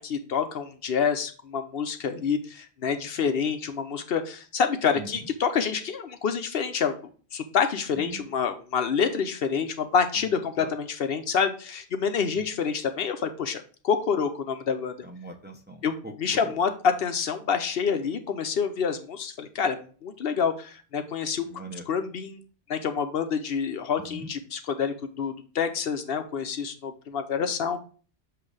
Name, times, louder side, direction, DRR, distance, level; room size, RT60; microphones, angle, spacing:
voice 1, 0.0-7.0 7.3-14.9 15.8-15.9 16.2-16.7 17.0-21.5 21.9-22.4 22.7-27.8, left 6 dB, 65° left, 8 dB, 0.9 m, -27 dB
voice 2, 7.9-8.3 10.6-10.7 12.3-12.5 15.0-16.1 16.4-16.5 21.5-21.9 24.1-24.3, right 2 dB, 10° right, 2 dB, 0.6 m, -41 dB
7.6 x 2.6 x 4.7 m, 0.40 s
omnidirectional pair, 1.1 m